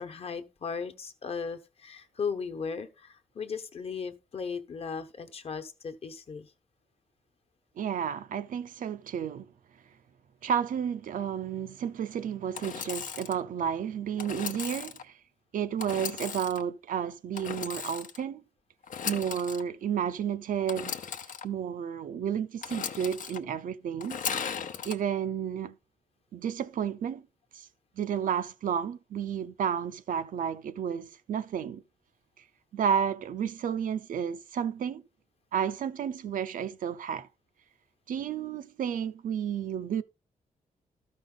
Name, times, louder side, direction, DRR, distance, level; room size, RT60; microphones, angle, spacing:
voice 1, 0.0-6.5, left 5 dB, 45° left, 1.1 m, -37 dB
voice 2, 7.8-9.5 10.4-15.2 15.5-18.4 19.1-20.9 21.4-24.5 24.8-25.7 26.3-27.2 27.5-27.7 28.0-31.8 32.7-35.0 35.5-37.3 38.1-40.0, right 8 dB, 75° right, 0.7 m, -31 dB
Engine / Sawing, 12.5-13.4 14.2-15.0 15.8-16.6 17.4-18.2 18.8-19.6 20.7-21.4 22.6-23.4 24.0-25.0, left 7 dB, 70° left, 0.8 m, -36 dB
13.0 x 5.4 x 3.9 m
wide cardioid pair, 145°, 14 cm